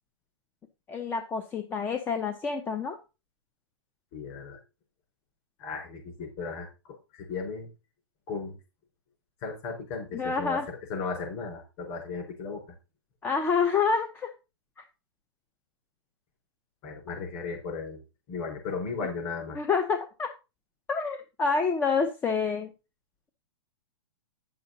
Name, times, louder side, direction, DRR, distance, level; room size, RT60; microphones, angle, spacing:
voice 1, 0.9-3.0 10.1-10.7 13.2-14.3 14.8-14.9 19.5-20.3 20.9-22.7, left 5 dB, 15° left, 7 dB, 0.7 m, -28 dB
voice 2, 4.1-4.6 5.6-7.7 8.3-8.6 9.4-12.6 16.8-18.0 18.3-19.6, left 4 dB, 35° left, 2 dB, 4.8 m, -36 dB
10.0 x 6.8 x 4.0 m, 0.28 s
hypercardioid pair, 155°, 14 cm